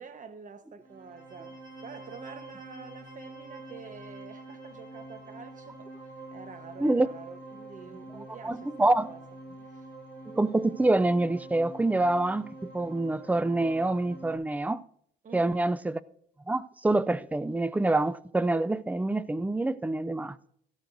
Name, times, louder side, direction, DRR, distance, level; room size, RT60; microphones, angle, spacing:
voice 1, 0.0-9.2 9.7-9.9 15.2-15.7, right 6 dB, 40° right, 1.2 m, -47 dB
sound 1, 0.8-14.3, right 2 dB, 55° right, 4.7 m, -46 dB
voice 2, 8.4-9.1 10.3-14.8 15.3-16.0 16.5-20.5, right 2 dB, 5° right, 0.4 m, -26 dB
17.0 x 13.0 x 2.6 m
cardioid pair, 100°, 21 cm